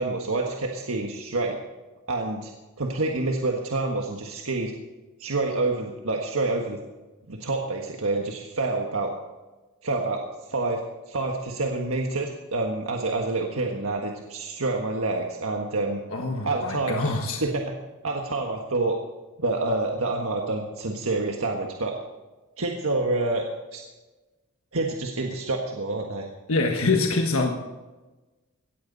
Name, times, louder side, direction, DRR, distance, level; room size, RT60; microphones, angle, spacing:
voice 1, 0.0-1.6 2.1-2.5 2.8-4.7 5.2-6.8 7.3-9.1 9.8-10.2 10.5-10.8 11.1-16.0 16.4-17.0 17.4-17.7 18.0-19.0 19.4-22.0 22.6-23.4 23.7-23.8 24.7-26.3, right 2 dB, 75° right, 1 dB, 1.6 m, -27 dB
voice 2, 16.1-17.4 26.5-27.6, left 3 dB, 75° left, 2 dB, 1.5 m, -25 dB
18.0 x 14.0 x 4.1 m, 1.2 s
head